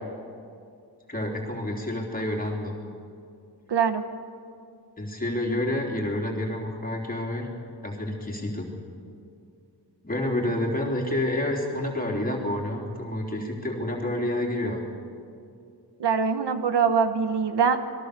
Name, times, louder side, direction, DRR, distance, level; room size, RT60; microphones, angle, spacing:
voice 1, 1.1-2.8 5.0-7.5 7.8-8.7 10.0-14.8, left 1 dB, 20° left, 0 dB, 3.6 m, -29 dB
voice 2, 3.7-4.0 16.0-17.8, right 6 dB, 85° right, 9 dB, 1.3 m, -23 dB
28.0 x 21.5 x 6.9 m, 2.4 s
wide cardioid pair, 140°, 40 cm